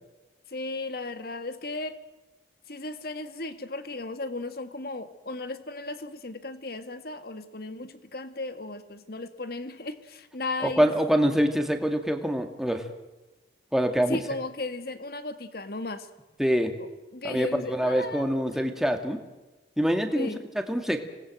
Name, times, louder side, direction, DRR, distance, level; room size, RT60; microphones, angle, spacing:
voice 1, 0.5-2.0 2.7-10.9 14.0-16.1 16.8-16.9 17.1-18.6 20.2-20.4, left 2 dB, 55° left, 10 dB, 1.9 m, -35 dB
voice 2, 10.6-12.9 13.7-14.2 16.4-16.7 17.2-19.2 19.8-20.3 20.7-21.0, equal, ahead, 5 dB, 2.2 m, -25 dB
26.5 x 19.5 x 7.8 m, 1.1 s
head